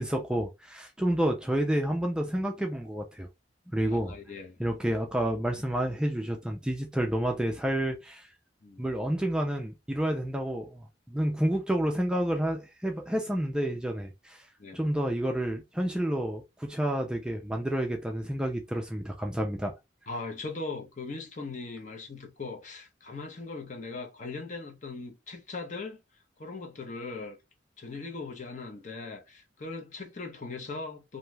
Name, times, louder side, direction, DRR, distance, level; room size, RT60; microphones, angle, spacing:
voice 1, 0.0-3.3 3.7-4.1 4.6-8.3 8.8-14.5 14.7-19.7, right 1 dB, 5° right, 0.3 m, -29 dB
voice 2, 3.9-4.6 8.6-8.9 14.6-14.8 20.1-26.0 26.4-27.4 27.8-31.2, left 3 dB, 40° left, 0.6 m, -39 dB
2.6 x 2.2 x 3.1 m
head